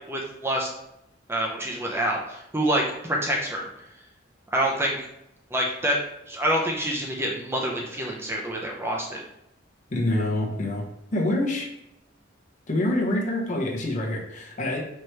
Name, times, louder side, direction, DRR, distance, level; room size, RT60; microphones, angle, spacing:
voice 1, 0.1-0.7 1.3-3.7 4.5-5.0 5.5-6.0 6.3-9.2, right 1 dB, 15° right, -1 dB, 0.5 m, -26 dB
voice 2, 9.9-10.8 11.1-11.7 12.7-14.8, left 1 dB, 40° left, -1 dB, 0.9 m, -26 dB
4.5 x 3.0 x 3.2 m, 0.82 s
head